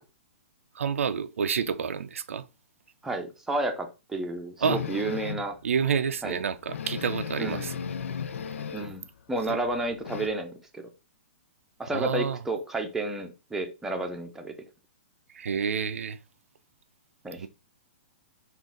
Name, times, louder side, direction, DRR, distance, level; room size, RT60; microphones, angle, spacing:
voice 1, 0.7-2.4 4.6-4.8 5.6-7.8 9.5-9.6 11.9-12.4 15.3-16.2 17.4-17.5, right 6 dB, 85° right, 0.4 m, -29 dB
voice 2, 3.0-5.6 6.2-6.4 7.4-7.7 8.7-10.8 11.8-14.5 17.2-17.5, right 2 dB, 5° right, 0.6 m, -31 dB
sound 1, 4.6-5.5 6.0-6.1 6.4-6.5 6.7-9.0 9.3-10.3, left 7 dB, 85° left, 0.4 m, -35 dB
3.8 x 2.5 x 3.8 m
hypercardioid pair, 140°, 7 cm